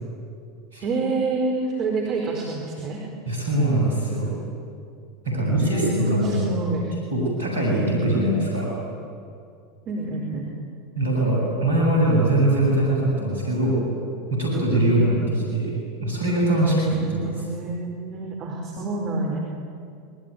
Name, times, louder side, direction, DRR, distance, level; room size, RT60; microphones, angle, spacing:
voice 1, 0.8-3.0 5.3-6.8 7.6-8.3 9.8-10.5 14.6-15.2 16.7-19.4, right 2 dB, 45° right, 0 dB, 4.7 m, -28 dB
voice 2, 3.3-4.3 5.2-6.5 7.1-8.7 11.0-13.8 14.3-17.2, right 1 dB, 85° right, -3 dB, 7.5 m, -22 dB
26.5 x 22.0 x 9.5 m, 2.3 s
hypercardioid pair, 85°, 0 cm